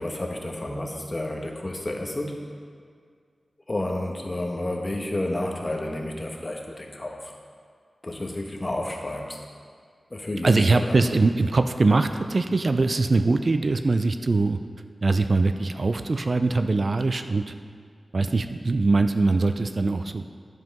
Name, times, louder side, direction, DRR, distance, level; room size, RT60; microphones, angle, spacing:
voice 1, 0.0-2.3 3.7-7.3 8.0-9.4 10.1-11.1, left 1 dB, 30° left, 1 dB, 1.1 m, -31 dB
voice 2, 10.4-14.6 15.0-17.5 18.1-20.2, right 3 dB, 50° right, 8 dB, 0.4 m, -22 dB
10.5 x 5.6 x 5.3 m, 2.1 s
wide cardioid pair, 90°, 0 cm